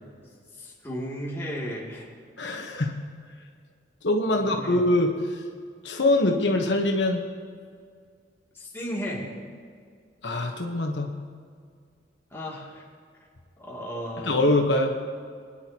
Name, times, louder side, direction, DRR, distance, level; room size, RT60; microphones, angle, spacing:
voice 1, 0.6-2.1 4.3-4.8 8.5-9.3 12.3-12.8 13.6-14.4, equal, 15° left, -5 dB, 2.6 m, -34 dB
voice 2, 2.4-3.0 4.0-5.4 5.8-7.2 10.2-11.2 14.2-15.0, left 1 dB, 80° left, 2 dB, 1.1 m, -23 dB
22.5 x 10.0 x 2.9 m, 2.1 s
head